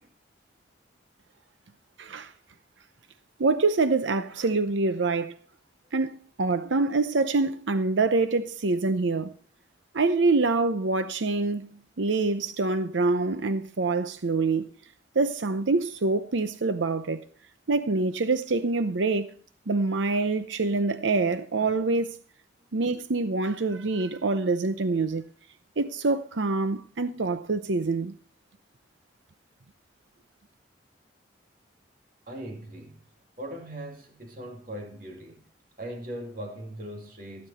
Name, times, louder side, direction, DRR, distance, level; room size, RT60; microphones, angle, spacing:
voice 1, 2.0-2.3 3.4-5.3 5.9-9.3 9.9-11.7 12.0-14.7 15.1-17.2 17.7-19.3 19.7-22.2 22.7-25.2 25.8-28.1, right 3 dB, 80° right, 0.7 m, -25 dB
voice 2, 32.3-33.1 33.4-35.4 35.8-37.5, right 1 dB, 45° right, 2.5 m, -39 dB
16.5 x 9.6 x 4.2 m
head